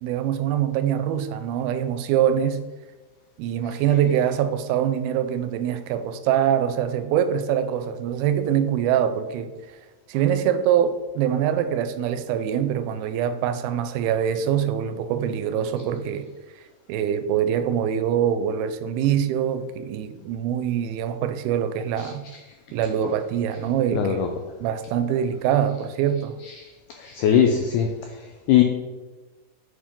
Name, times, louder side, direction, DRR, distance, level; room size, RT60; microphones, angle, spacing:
voice 1, 0.0-2.6 3.4-9.5 10.1-16.3 16.9-22.2 22.7-24.3 24.6-26.4, right 9 dB, 85° right, 2.4 m, -24 dB
voice 2, 23.9-24.3 26.4-26.7 27.0-28.6, left 9 dB, 90° left, 1.8 m, -21 dB
8.8 x 4.3 x 3.7 m
omnidirectional pair, 4.3 m